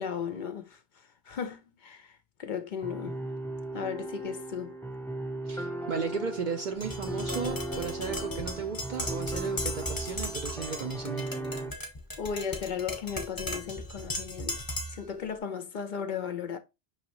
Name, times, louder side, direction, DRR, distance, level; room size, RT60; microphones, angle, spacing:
voice 1, 0.0-3.2 3.7-4.8 12.2-14.6 14.9-16.6, left 7 dB, 60° left, 0.6 m, -36 dB
sound 1, 2.8-11.7, right 2 dB, 5° left, 0.4 m, -37 dB
voice 2, 5.5-11.3, right 5 dB, 55° right, 0.6 m, -35 dB
Tap, 6.8-15.1, left 1 dB, 20° left, 0.8 m, -37 dB
5.7 x 3.0 x 2.9 m
omnidirectional pair, 1.0 m